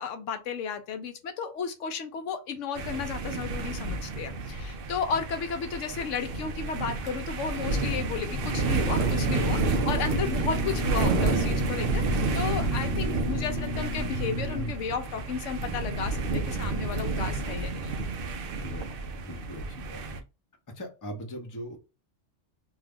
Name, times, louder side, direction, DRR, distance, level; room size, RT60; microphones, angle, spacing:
voice 1, 0.0-17.8, left 6 dB, 75° left, 0.9 m, -33 dB
sound 1, 2.8-20.2, right 3 dB, 60° right, 0.6 m, -30 dB
sound 2, 8.3-14.7, equal, 55° left, 1.0 m, -34 dB
voice 2, 18.6-20.2 20.7-21.8, equal, 20° left, 0.6 m, -41 dB
2.6 x 2.3 x 3.4 m
omnidirectional pair, 1.3 m